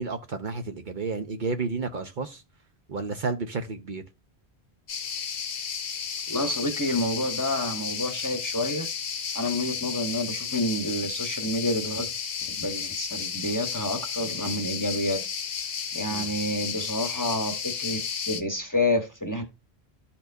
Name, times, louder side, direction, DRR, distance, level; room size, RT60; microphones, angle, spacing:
voice 1, 0.0-2.4 2.9-4.0 16.1-16.3, right 4 dB, 55° right, 0.8 m, -31 dB
sound 1, 4.9-18.4, left 6 dB, 65° left, 1.0 m, -33 dB
voice 2, 6.3-8.9 9.3-12.1 12.6-15.2 15.9-18.0 18.3-19.4, left 1 dB, 20° left, 0.9 m, -28 dB
12.0 x 4.3 x 2.7 m
omnidirectional pair, 1.1 m